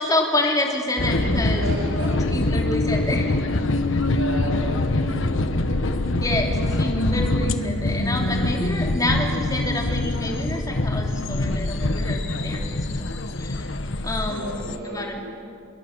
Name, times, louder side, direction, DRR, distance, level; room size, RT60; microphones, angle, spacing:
voice 1, 0.0-1.7 2.3-3.3 6.2-13.1 13.4-13.7 14.0-14.6 14.8-15.2, left 2 dB, 15° left, 0 dB, 3.0 m, -27 dB
sound 1, 1.0-14.8, left 2 dB, 65° left, 1.3 m, -24 dB
voice 2, 1.6-2.1 4.0-6.2 14.2-15.3, right 2 dB, 85° right, -5 dB, 4.1 m, -34 dB
28.0 x 22.0 x 7.4 m, 2.3 s
head